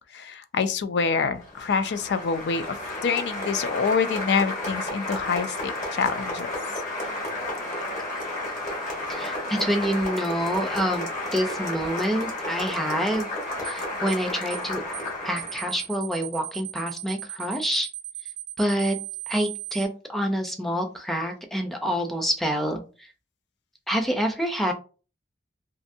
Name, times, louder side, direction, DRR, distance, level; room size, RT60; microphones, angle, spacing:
voice 1, 0.1-2.7 3.0-6.5, left 5 dB, 75° left, 0.3 m, -26 dB
Applause, 1.4-15.8, left 1 dB, 45° left, 1.3 m, -32 dB
voice 2, 9.1-13.3 13.6-14.8 15.2-17.9 18.6-19.0 19.3-23.1 23.9-24.7, equal, ahead, 0.4 m, -27 dB
sound 1, 13.6-13.8 14.1-14.2 14.5-14.7 14.9-15.1 15.4-19.9, right 16 dB, 70° right, 0.5 m, -36 dB
2.6 x 2.5 x 2.6 m
head